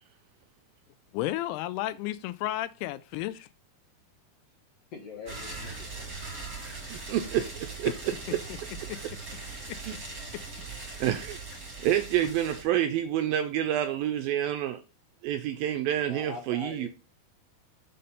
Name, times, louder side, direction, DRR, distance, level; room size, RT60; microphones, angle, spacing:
voice 1, 1.1-3.5 8.9-9.0 9.7-9.8, left 15 dB, 85° left, 2.5 m, -32 dB
voice 2, 4.9-6.0 16.0-16.9, left 4 dB, 60° left, 1.8 m, -42 dB
sound 1, 5.3-12.6, right 3 dB, 35° right, 1.1 m, -40 dB
voice 3, 6.9-8.4 9.8-9.9 11.0-11.4 11.8-14.8 15.2-16.9, right 11 dB, 85° right, 2.1 m, -28 dB
6.5 x 4.2 x 5.4 m
omnidirectional pair, 4.6 m